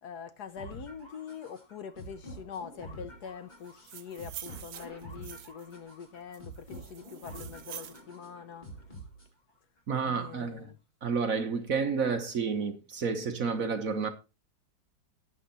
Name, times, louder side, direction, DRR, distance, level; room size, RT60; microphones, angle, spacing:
voice 1, 0.0-8.7 10.1-10.8, left 7 dB, 65° left, 1.2 m, -44 dB
sound 1, 0.6-9.6, right 1 dB, 20° left, 4.1 m, -47 dB
sound 2, 3.6-5.7 6.3-8.0, right 11 dB, 70° right, 1.4 m, -46 dB
voice 2, 9.9-10.7 11.0-14.1, right 5 dB, 50° right, 1.4 m, -30 dB
11.5 x 8.8 x 4.0 m
omnidirectional pair, 2.1 m